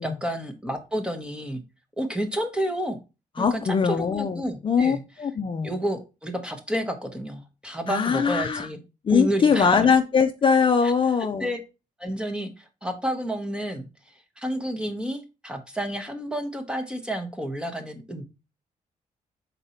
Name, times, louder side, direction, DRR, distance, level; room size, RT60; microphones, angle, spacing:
voice 1, 0.0-1.6 2.0-3.0 3.4-5.0 5.6-8.8 9.1-9.9 10.8-10.9 11.4-11.6 12.0-13.9 14.4-18.2, equal, 5° right, 1.1 m, -30 dB
voice 2, 3.4-5.8 7.9-8.7 9.0-11.5, left 6 dB, 35° left, 0.5 m, -22 dB
5.2 x 4.1 x 4.3 m
cardioid pair, 120°, 14 cm